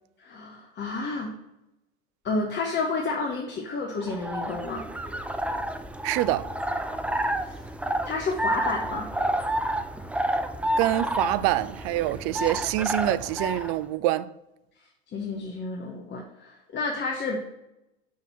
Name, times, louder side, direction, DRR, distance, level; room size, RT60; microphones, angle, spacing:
voice 1, 0.2-1.3 2.2-4.9 7.4-7.7 8.0-9.1 15.1-17.4, left 3 dB, 35° left, 1.0 m, -30 dB
sound 1, 4.0-13.8, right 1 dB, 5° right, 0.5 m, -30 dB
voice 2, 6.0-6.5 10.8-14.3, right 15 dB, 65° right, 0.5 m, -26 dB
5.7 x 3.7 x 5.9 m
hypercardioid pair, 80°, 31 cm